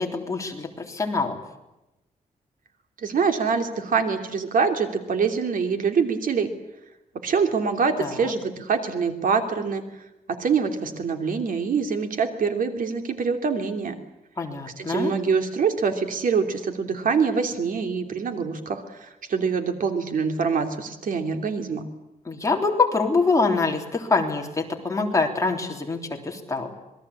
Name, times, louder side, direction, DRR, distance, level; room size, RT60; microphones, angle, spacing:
voice 1, 0.0-1.4 8.0-8.3 14.4-15.1 22.3-26.7, left 4 dB, 20° left, 1 dB, 3.6 m, -25 dB
voice 2, 3.0-6.5 7.2-9.8 10.3-13.9 14.8-21.8, right 5 dB, 65° right, 6 dB, 3.0 m, -25 dB
27.0 x 21.5 x 8.5 m, 0.95 s
wide cardioid pair, 160°, 15 cm